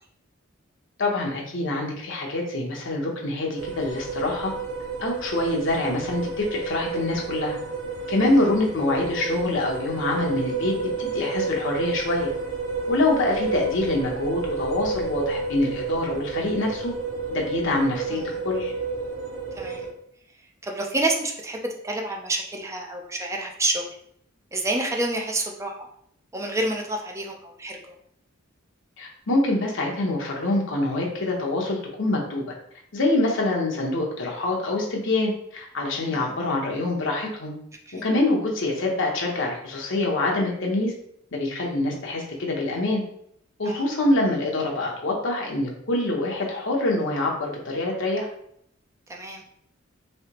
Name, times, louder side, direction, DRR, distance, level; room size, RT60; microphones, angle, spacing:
voice 1, 1.0-4.5 5.0-7.6 8.1-12.3 12.9-16.9 17.3-18.7 29.0-32.4 32.9-37.5 38.0-40.9 41.3-43.0 43.6-48.3, left 2 dB, 70° left, -1 dB, 0.8 m, -25 dB
sound 1, 3.6-19.9, right 4 dB, 75° right, 0.6 m, -31 dB
voice 2, 19.5-19.9 20.6-23.9 24.5-25.9 26.3-27.8 36.1-36.3 37.9-38.0 43.6-43.9 49.1-49.4, right 2 dB, 15° right, 2 dB, 0.4 m, -28 dB
3.2 x 2.8 x 2.9 m, 0.70 s
head